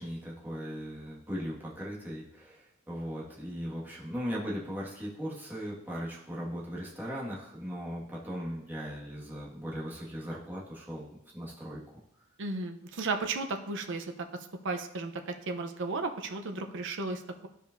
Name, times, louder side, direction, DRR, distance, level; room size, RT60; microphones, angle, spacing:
voice 1, 0.0-11.1 11.3-11.8, equal, 10° right, -5 dB, 1.6 m, -38 dB
voice 2, 12.4-14.3 14.6-17.5, right 3 dB, 60° right, 5 dB, 0.7 m, -34 dB
13.5 x 5.1 x 2.6 m, 0.79 s
head